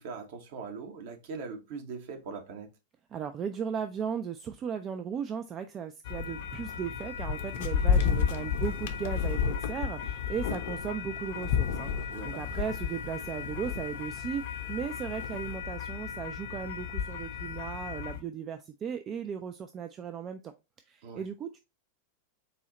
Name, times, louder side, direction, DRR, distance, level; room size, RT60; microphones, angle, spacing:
voice 1, 0.0-2.7 12.1-12.4 21.0-21.2, right 5 dB, 50° right, 1.0 m, -41 dB
voice 2, 3.1-20.5 20.9-21.6, right 7 dB, 30° right, 0.3 m, -36 dB
sound 1, 6.0-18.2, left 7 dB, 55° left, 0.6 m, -32 dB
4.2 x 2.7 x 3.8 m
figure-of-eight pair, 90°, 0 cm